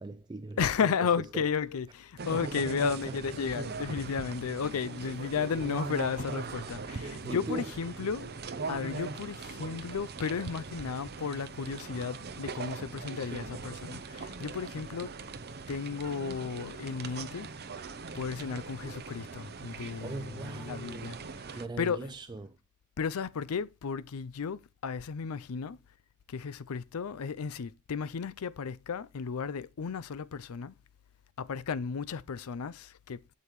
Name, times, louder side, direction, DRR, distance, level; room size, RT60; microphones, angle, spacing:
voice 1, 0.0-1.5 2.3-3.2 6.6-6.7 7.2-7.7 19.6-21.2 21.5-22.6, right 3 dB, 20° right, 0.3 m, -41 dB
voice 2, 0.6-15.1 15.7-17.5 18.1-21.2 21.8-22.1 23.0-25.8 26.3-30.7 31.4-33.2, left 6 dB, 70° left, 0.5 m, -34 dB
sound 1, 2.2-21.7, right 4 dB, 45° right, 0.7 m, -41 dB
8.3 x 7.6 x 3.1 m
head